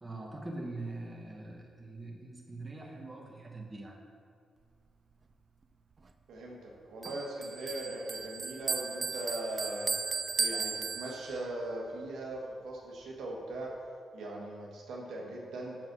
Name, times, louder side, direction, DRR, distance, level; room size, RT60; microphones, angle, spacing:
voice 1, 0.0-4.0, right 2 dB, 20° right, 0 dB, 1.1 m, -43 dB
voice 2, 6.3-9.9 10.4-13.7 14.1-15.8, right 2 dB, 85° right, -2 dB, 1.3 m, -40 dB
Bell, 7.0-11.5, right 4 dB, 40° right, 0.3 m, -35 dB
5.9 x 5.2 x 6.1 m, 2.2 s
cardioid pair, 85°, 0 cm